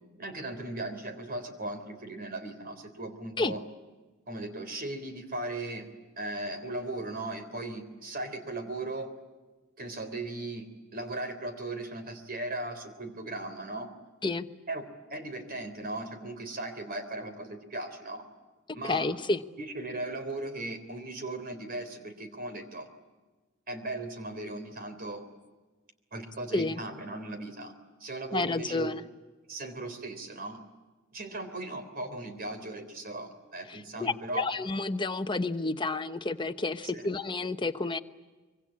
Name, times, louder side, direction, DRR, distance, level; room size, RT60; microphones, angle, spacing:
voice 1, 0.2-3.6 4.3-9.1 9.8-13.9 14.7-18.3 18.7-19.1 19.6-22.9 23.7-25.2 26.1-27.7 28.0-28.9 29.5-30.6 31.1-34.5 36.8-37.1, right 2 dB, 50° right, 9 dB, 3.5 m, -37 dB
voice 2, 18.8-19.4 26.5-26.8 28.3-29.0 33.7-38.0, left 3 dB, 25° left, 8 dB, 1.0 m, -30 dB
25.0 x 24.0 x 8.6 m, 1.3 s
head